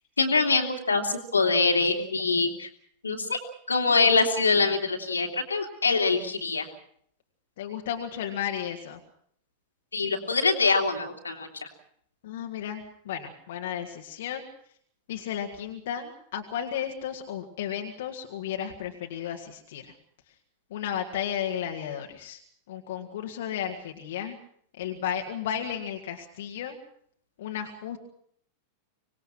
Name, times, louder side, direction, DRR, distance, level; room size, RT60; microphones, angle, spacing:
voice 1, 0.2-2.7 3.0-3.4 3.7-6.7 9.9-11.7, left 4 dB, 75° left, 4 dB, 2.7 m, -24 dB
voice 2, 7.6-9.0 12.2-14.4 15.1-19.9 20.7-22.4 22.7-24.4 24.8-26.8 27.4-28.0, left 9 dB, 55° left, 3 dB, 2.0 m, -33 dB
25.0 x 20.0 x 6.0 m, 0.64 s
figure-of-eight pair, 90°, 0 cm